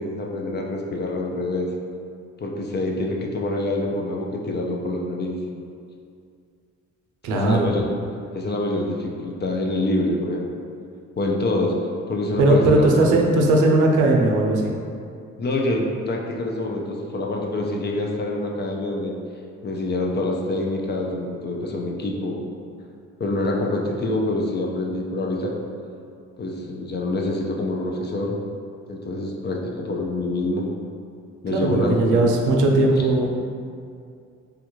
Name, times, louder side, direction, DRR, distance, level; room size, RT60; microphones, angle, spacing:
voice 1, 0.0-1.7 2.4-5.4 7.3-7.9 8.3-10.5 11.2-11.7 12.1-13.1 15.4-19.2 19.6-22.4 23.2-25.5 26.4-28.4 28.9-30.7 31.4-32.3, left 2 dB, 35° left, 0 dB, 0.4 m, -26 dB
voice 2, 7.2-7.7 12.4-14.7 31.5-33.3, right 2 dB, 80° right, 1 dB, 0.5 m, -18 dB
3.4 x 2.3 x 3.0 m, 2.3 s
cardioid pair, 90°, 30 cm